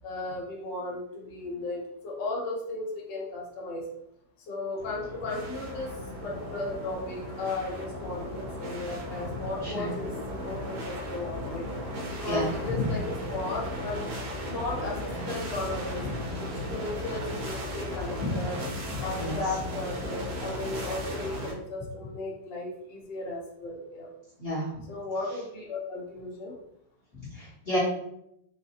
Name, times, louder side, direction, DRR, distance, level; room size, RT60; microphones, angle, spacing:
voice 1, 0.0-3.9 4.5-10.1 10.4-11.7 12.1-14.0 14.5-16.1 16.7-18.6 19.0-24.1 24.9-26.6, left 2 dB, 70° left, -3 dB, 1.6 m, -35 dB
sound 1, 4.8-21.5, left 1 dB, 85° right, 1.7 m, -36 dB
voice 2, 9.6-9.9 12.3-12.9 15.1-15.3 16.0-16.1 16.5-16.7 18.2-18.5 18.9-19.4 24.4-24.9 27.1-27.8, left 1 dB, 40° left, -11 dB, 1.4 m, -32 dB
4.3 x 2.5 x 2.8 m, 0.78 s
omnidirectional pair, 2.1 m